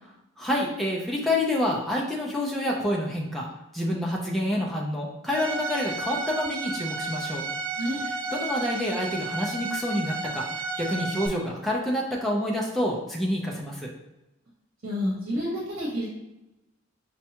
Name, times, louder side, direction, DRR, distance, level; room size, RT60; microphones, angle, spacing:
voice 1, 0.4-3.5 3.7-7.4 8.3-13.9, left 1 dB, ahead, -3 dB, 0.5 m, -28 dB
Bowed string instrument, 5.3-11.3, right 3 dB, 90° right, 0.5 m, -32 dB
voice 2, 14.8-16.1, equal, 65° right, -5 dB, 1.1 m, -29 dB
5.2 x 2.3 x 2.8 m, 0.95 s
head